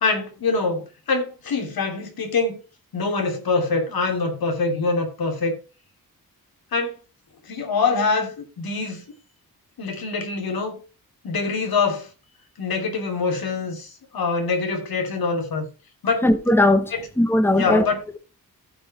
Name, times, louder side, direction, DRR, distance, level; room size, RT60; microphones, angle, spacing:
voice 1, 0.0-2.6 2.9-5.5 6.7-7.0 7.4-9.0 9.8-10.8 11.2-12.1 12.6-15.6 16.0-16.3 16.9-17.1 17.5-18.0, left 4 dB, 75° left, 3.1 m, -24 dB
voice 2, 16.2-17.9, left 1 dB, 5° left, 1.1 m, -18 dB
15.0 x 5.3 x 4.3 m
wide cardioid pair, 165°, 36 cm